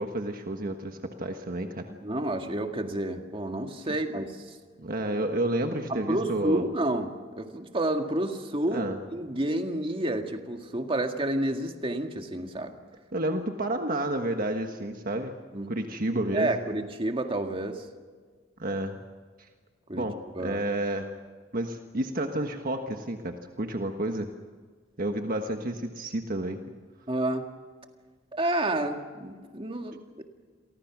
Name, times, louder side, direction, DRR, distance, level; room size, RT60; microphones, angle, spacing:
voice 1, 0.0-1.9 3.9-4.0 4.8-6.6 8.7-9.0 13.1-15.4 15.7-16.6 18.6-19.0 19.4-19.5 19.9-21.1 21.5-24.3 25.0-26.6, right 1 dB, 50° right, 5 dB, 1.4 m, -30 dB
voice 2, 2.0-4.6 5.9-12.8 15.5-15.8 16.3-17.9 19.9-20.6 27.1-27.6 28.3-30.2, right 1 dB, 30° right, 4 dB, 2.0 m, -30 dB
30.0 x 23.5 x 6.1 m, 1.5 s
head